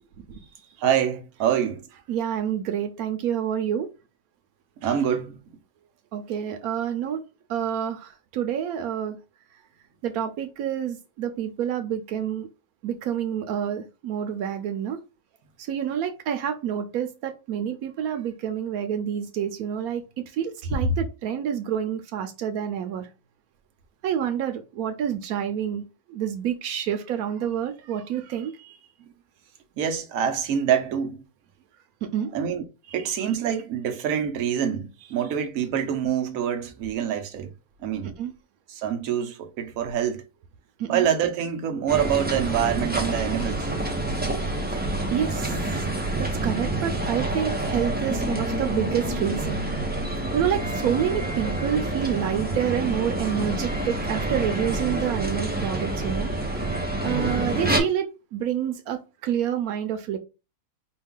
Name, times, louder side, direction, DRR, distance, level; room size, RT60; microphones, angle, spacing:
voice 1, 0.8-2.0 4.8-5.4 20.8-20.9 29.8-31.2 32.3-32.6 32.9-37.5 37.8-38.1 38.7-40.2 40.9-43.7, right 8 dB, 70° right, 1.1 m, -26 dB
voice 2, 2.1-3.9 6.1-7.2 7.5-9.2 10.0-12.5 12.8-15.0 15.6-23.1 24.0-25.8 26.1-28.8 32.0-32.3 38.2-38.3 40.8-41.1 44.7-44.8 45.1-45.6 46.1-49.6 50.3-56.3 57.0-60.2, right 9 dB, 90° right, 1.1 m, -28 dB
sound 1, 41.9-57.8, right 1 dB, 10° right, 0.5 m, -27 dB
4.8 x 2.3 x 3.6 m
omnidirectional pair, 1.5 m